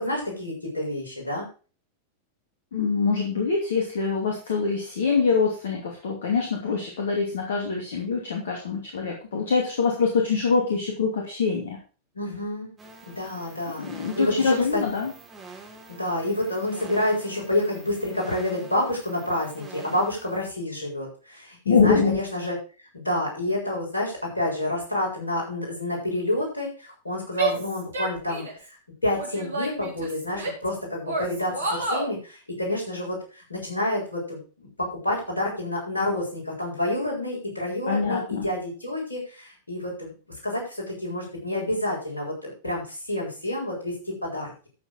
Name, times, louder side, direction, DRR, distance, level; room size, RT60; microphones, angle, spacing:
voice 1, 0.0-1.5 12.1-12.7 13.1-13.9 14.2-14.8 15.9-22.6 22.9-28.4 29.0-40.1 40.4-44.0 44.2-44.7, left 1 dB, 80° left, -2 dB, 7.0 m, -28 dB
voice 2, 2.7-11.8 13.8-15.1 21.6-22.2 37.9-38.5, left 5 dB, 65° left, 1 dB, 2.6 m, -24 dB
sound 1, 12.8-20.5, right 3 dB, 20° right, 4.3 m, -46 dB
Female speech woman speaking / Yell, 27.3-28.7 29.1-30.7 31.0-32.1, right 3 dB, 70° right, 4.6 m, -29 dB
13.0 x 7.2 x 4.8 m, 0.36 s
figure-of-eight pair, 90°, 0 cm